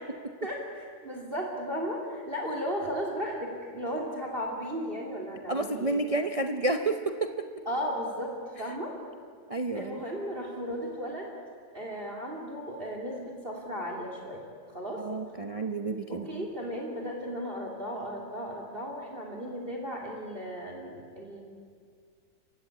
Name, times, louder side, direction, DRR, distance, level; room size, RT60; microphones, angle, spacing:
voice 1, 0.4-6.0 7.6-9.0 9.7-11.3 11.7-14.4 14.7-15.0 16.1-21.4, equal, 30° right, 1 dB, 3.0 m, -35 dB
voice 2, 5.5-7.5 9.5-10.0 15.0-16.4, right 2 dB, 45° right, 6 dB, 0.4 m, -30 dB
29.0 x 16.0 x 8.6 m, 2.1 s
omnidirectional pair, 2.0 m